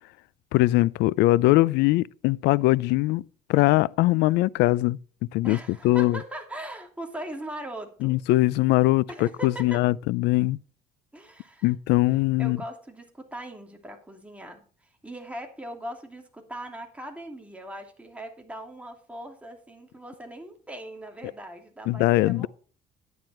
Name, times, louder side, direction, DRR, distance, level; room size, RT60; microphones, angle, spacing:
voice 1, 0.5-3.2 3.5-5.0 5.3-5.6 5.8-6.2 8.0-10.6 11.6-12.6 21.9-22.5, left 18 dB, 90° left, 0.4 m, -21 dB
voice 2, 5.4-8.2 9.1-9.8 11.1-11.7 12.4-22.5, right 1 dB, 5° right, 2.7 m, -40 dB
11.0 x 9.5 x 4.3 m
cardioid pair, 110°, 17 cm